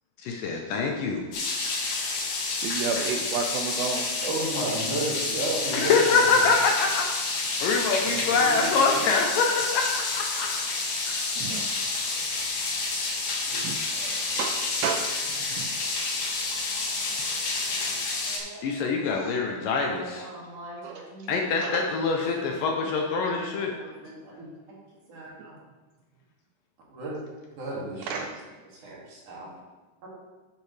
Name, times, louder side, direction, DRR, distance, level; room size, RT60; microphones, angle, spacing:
voice 1, 0.2-1.2 5.7-10.5 11.1-11.2 18.6-20.3 21.3-23.7, left 4 dB, 75° left, 2 dB, 2.1 m, -25 dB
sound 1, 1.3-18.4, left 3 dB, 55° left, 2.2 m, -29 dB
voice 2, 2.6-4.1 11.4-11.7 13.6-13.8 14.3-15.8 19.2-19.3 20.8-21.3 21.6-21.8 25.4-25.5 28.0-28.4, right 5 dB, 80° right, 3 dB, 2.2 m, -32 dB
voice 3, 4.2-6.5 8.0-9.0 13.5-14.1 17.0-17.2 17.7-17.9 18.2-21.9 22.3-24.6 25.1-25.6 26.9-27.1 27.6-28.2 28.8-29.5 30.0-30.1, right 2 dB, 55° right, -6 dB, 3.6 m, -36 dB
10.5 x 8.2 x 3.3 m, 1.3 s
omnidirectional pair, 4.4 m